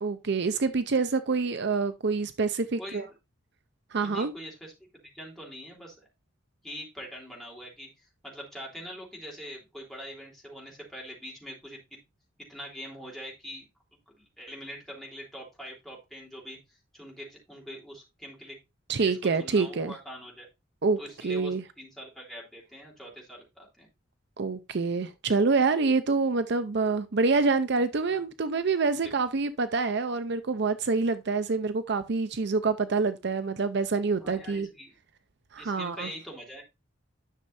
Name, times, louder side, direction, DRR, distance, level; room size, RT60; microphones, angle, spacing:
voice 1, 0.0-3.0 3.9-4.3 18.9-19.9 20.8-21.0 21.2-21.6 24.4-34.7 35.5-36.1, right 4 dB, 55° right, 0.5 m, -26 dB
voice 2, 4.0-6.0 6.6-12.0 12.5-13.6 14.2-16.6 16.9-18.6 19.0-20.5 21.0-23.9 28.1-28.2 34.2-35.0 35.6-36.6, equal, ahead, 3.4 m, -43 dB
11.0 x 6.4 x 2.6 m
head